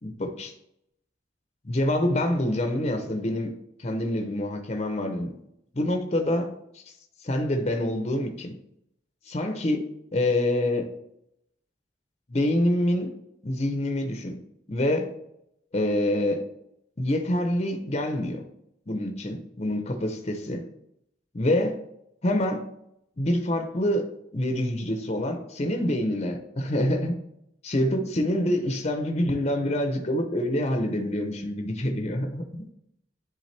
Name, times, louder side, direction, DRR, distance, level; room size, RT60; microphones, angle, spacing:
voice 1, 0.0-0.5 1.6-5.4 5.7-6.5 7.2-8.5 9.3-9.8 10.1-10.9 12.3-13.1 13.4-14.4 14.7-15.1 15.7-16.5 17.0-18.4 18.9-20.6 21.3-21.8 22.2-22.7 23.2-27.2 27.6-32.7, left 1 dB, 35° left, 5 dB, 0.7 m, -26 dB
10.5 x 3.6 x 3.3 m, 0.77 s
head